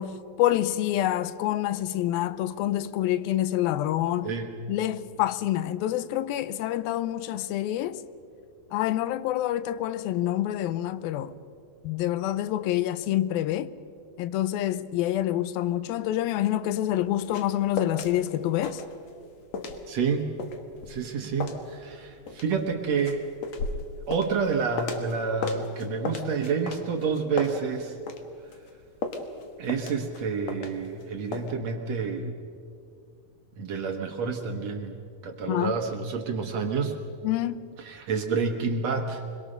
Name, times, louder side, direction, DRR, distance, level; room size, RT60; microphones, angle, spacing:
voice 1, 0.0-4.3 4.7-8.0 8.7-11.3 11.8-13.7 14.2-18.8 35.5-35.7 37.2-37.6, left 13 dB, 85° left, 2.5 m, -27 dB
sound 1, 16.9-18.1 18.4-19.3 19.5-25.2 25.4-28.2 28.5-31.0 31.3-31.5, left 4 dB, 55° left, 2.3 m, -35 dB
voice 2, 19.9-20.3 20.9-23.3 24.1-27.9 29.6-32.3 33.6-35.0 35.2-37.0 37.8-39.2, right 5 dB, 60° right, 1.9 m, -29 dB
25.0 x 22.0 x 6.6 m
omnidirectional pair, 4.1 m